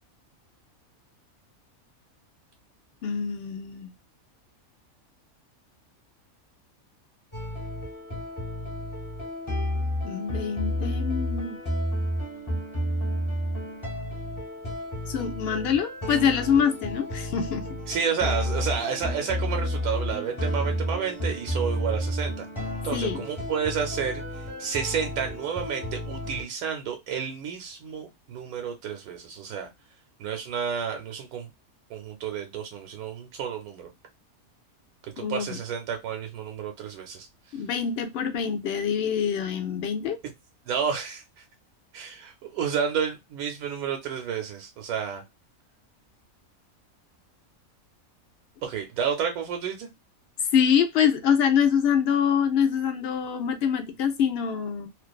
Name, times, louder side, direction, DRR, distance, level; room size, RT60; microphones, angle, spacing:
voice 1, 3.0-3.9 10.0-11.6 15.1-17.7 22.9-23.3 35.2-35.6 37.5-40.2 50.5-54.9, left 7 dB, 70° left, 0.6 m, -25 dB
sound 1, 7.3-26.4, equal, 25° left, 0.8 m, -31 dB
voice 2, 17.9-22.5 22.8-24.2 24.6-29.7 30.2-31.5 31.9-33.9 35.2-37.3 40.7-41.2 41.9-45.2 48.6-49.9, right 7 dB, 85° right, 1.1 m, -30 dB
2.5 x 2.3 x 2.2 m
omnidirectional pair, 1.5 m